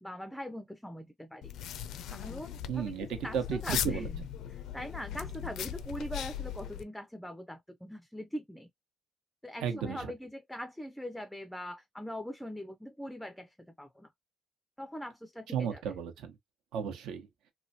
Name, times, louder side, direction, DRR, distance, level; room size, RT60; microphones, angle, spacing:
voice 1, 0.0-1.5 2.1-4.2 4.5-8.7 9.4-14.1 14.8-15.8, equal, 5° left, 0.4 m, -42 dB
sound 1, 1.4-6.8, left 9 dB, 75° left, 0.4 m, -38 dB
voice 2, 2.7-4.1 9.6-10.1 15.5-16.4 16.7-17.3, right 8 dB, 80° right, 1.0 m, -34 dB
3.1 x 2.2 x 2.7 m
cardioid pair, 120°, 0 cm